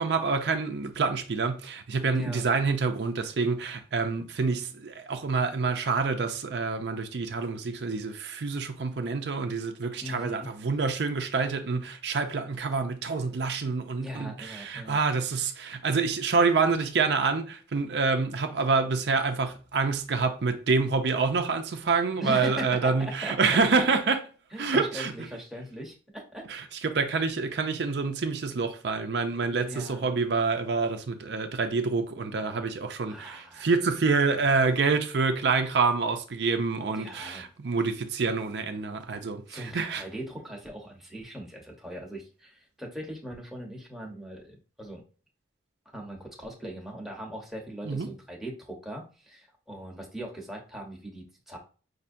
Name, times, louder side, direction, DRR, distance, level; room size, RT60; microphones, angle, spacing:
voice 1, 0.0-24.3 24.6-25.1 26.5-40.0 47.8-48.1, right 4 dB, 70° right, 0.5 m, -27 dB
voice 2, 2.1-2.5 10.0-10.5 14.0-15.0 22.1-23.4 24.5-26.4 29.6-30.2 33.1-33.6 37.0-37.5 39.5-45.0 45.9-51.6, equal, ahead, 1.0 m, -40 dB
5.5 x 2.6 x 2.6 m
head